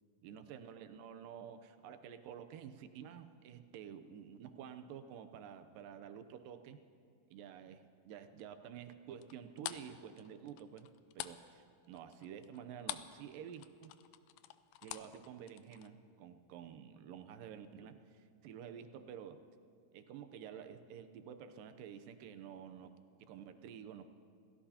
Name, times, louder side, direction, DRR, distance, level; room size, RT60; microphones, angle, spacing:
voice 1, 0.2-6.8 7.3-10.9 11.2-13.9 14.8-19.4 19.9-22.9 23.2-24.1, right 8 dB, 85° right, 8 dB, 2.4 m, -50 dB
sound 1, 9.2-13.2 13.5-15.9, left 14 dB, 90° left, 1.6 m, -46 dB
28.0 x 16.5 x 2.9 m, 2.2 s
omnidirectional pair, 3.9 m